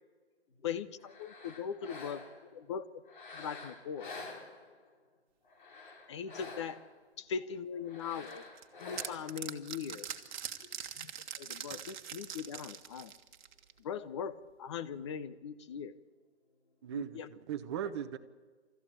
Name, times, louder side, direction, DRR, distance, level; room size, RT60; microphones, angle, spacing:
voice 1, 0.6-2.2 2.5-2.8 3.3-4.1 6.1-6.8 7.2-8.4 8.8-10.1 11.0-11.1 11.4-13.1 13.8-15.9 16.9-17.3, left 7 dB, 25° left, 0.8 m, -40 dB
sound 1, 1.0-2.5 3.1-4.9 5.5-7.0 7.8-9.4, left 3 dB, 45° left, 3.9 m, -48 dB
voice 2, 1.8-2.2 2.5-2.8 4.8-4.9 7.2-7.5 7.7-8.4 10.4-12.0 12.9-13.9 15.3-15.4 15.7-16.9, left 3 dB, 65° left, 4.2 m, -67 dB
sound 2, 8.3-13.8, right 8 dB, 45° right, 1.6 m, -43 dB
voice 3, 16.8-18.2, right 9 dB, 25° right, 1.0 m, -38 dB
29.0 x 14.0 x 8.8 m
hypercardioid pair, 155°, 33 cm